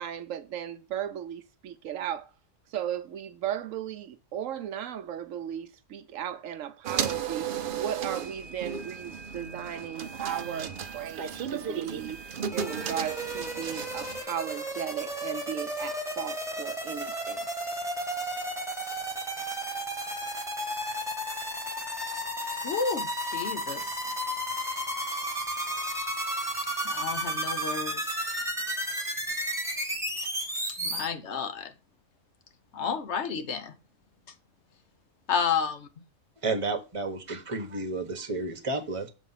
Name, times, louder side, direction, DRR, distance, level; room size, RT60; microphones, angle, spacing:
voice 1, 0.0-2.3 2.7-7.5 7.7-12.2 12.5-17.5, right 9 dB, 75° right, 1.0 m, -36 dB
sound 1, 6.8-14.2, right 7 dB, 55° right, 0.6 m, -34 dB
sound 2, 12.5-31.1, right 1 dB, ahead, 1.5 m, -33 dB
voice 2, 22.6-24.0 26.8-28.2 30.8-31.7 32.7-33.7 35.3-35.9, left 6 dB, 60° left, 1.2 m, -31 dB
voice 3, 36.4-39.1, right 3 dB, 25° right, 1.1 m, -31 dB
7.2 x 4.1 x 5.6 m
omnidirectional pair, 1.4 m